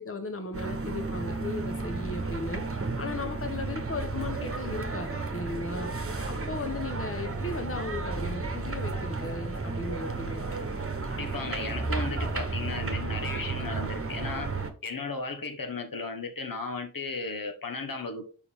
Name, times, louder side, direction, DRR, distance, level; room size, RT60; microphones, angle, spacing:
voice 1, 0.0-2.6 3.0-5.9 6.3-10.5, left 3 dB, 40° left, 7 dB, 0.9 m, -36 dB
sound 1, 0.5-14.7, right 3 dB, 40° right, 1.1 m, -33 dB
voice 2, 11.1-14.5 14.8-18.2, left 3 dB, 90° left, 6 dB, 1.4 m, -35 dB
6.7 x 5.4 x 3.6 m, 0.36 s
wide cardioid pair, 65°, 33 cm